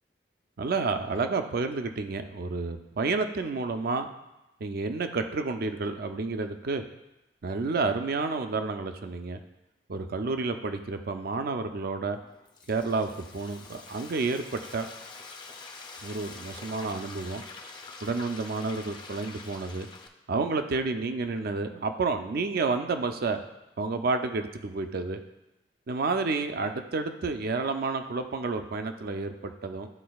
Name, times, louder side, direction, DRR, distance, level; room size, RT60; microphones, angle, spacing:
voice 1, 0.6-4.1 4.6-6.8 7.4-9.4 9.9-12.2 12.7-14.9 16.0-17.4 18.0-19.9 20.3-23.4 23.8-25.2 25.9-29.9, right 3 dB, 55° right, 7 dB, 0.4 m, -30 dB
Frying (food), 12.2-20.1, left 3 dB, 25° left, 0.5 m, -45 dB
12.0 x 4.2 x 2.3 m, 0.95 s
head